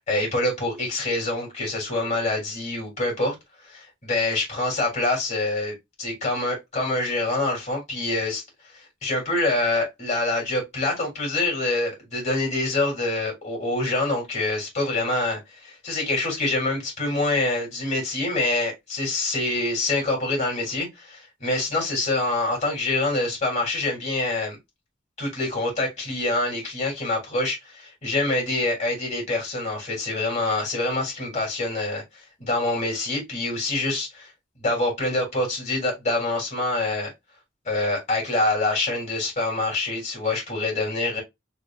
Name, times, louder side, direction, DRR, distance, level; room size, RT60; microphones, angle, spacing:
voice 1, 0.1-3.3 3.6-8.4 8.7-24.6 25.2-32.0 32.4-34.3 34.6-37.1 37.6-41.2, left 2 dB, 40° left, 3.3 m, -26 dB
4.9 x 3.3 x 2.4 m
head